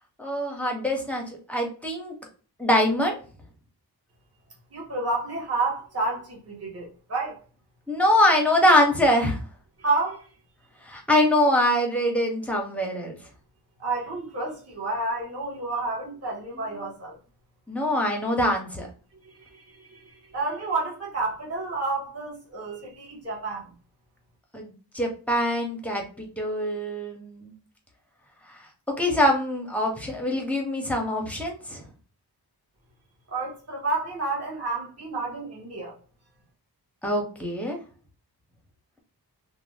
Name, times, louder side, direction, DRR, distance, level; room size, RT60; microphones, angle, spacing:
voice 1, 0.2-2.1 2.6-3.2 7.9-9.4 10.8-13.1 17.7-18.9 24.5-27.5 28.9-31.8 37.0-37.8, left 1 dB, 5° left, 0.6 m, -24 dB
voice 2, 4.7-7.4 9.8-10.3 13.8-17.2 19.2-23.7 33.3-35.9, right 3 dB, 40° right, 1.0 m, -30 dB
2.5 x 2.1 x 3.2 m
wide cardioid pair, 175°, 40 cm